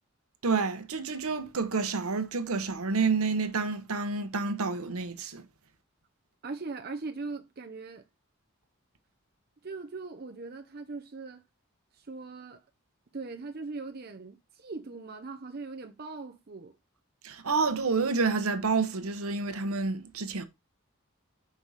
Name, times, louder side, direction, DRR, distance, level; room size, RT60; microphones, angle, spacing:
voice 1, 0.4-5.4 17.2-20.4, right 4 dB, 80° right, 0.9 m, -29 dB
voice 2, 6.4-8.0 9.6-11.4 11.9-12.6 13.1-16.7, right 3 dB, 45° right, 0.6 m, -40 dB
5.3 x 4.0 x 4.7 m
head